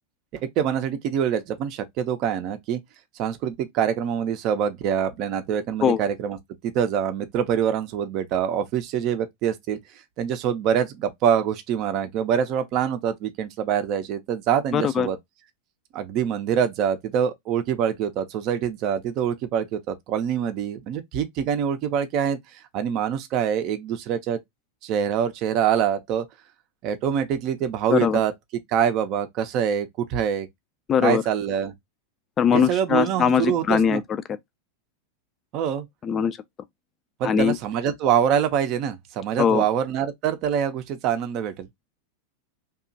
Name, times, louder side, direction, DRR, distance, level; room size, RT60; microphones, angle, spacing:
voice 1, 0.3-2.8 3.2-6.4 6.6-9.8 10.2-15.2 15.9-24.4 24.8-26.2 26.8-28.3 28.7-30.5 31.0-31.7 32.5-34.0 35.5-35.9 37.2-41.7, right 8 dB, 40° right, 0.5 m, -25 dB
voice 2, 14.7-15.1 27.9-28.2 30.9-31.2 32.4-34.0 36.0-36.4 37.2-37.6 39.4-39.6, left 7 dB, 25° left, 0.3 m, -21 dB
2.8 x 2.3 x 2.5 m
figure-of-eight pair, 90°, 0 cm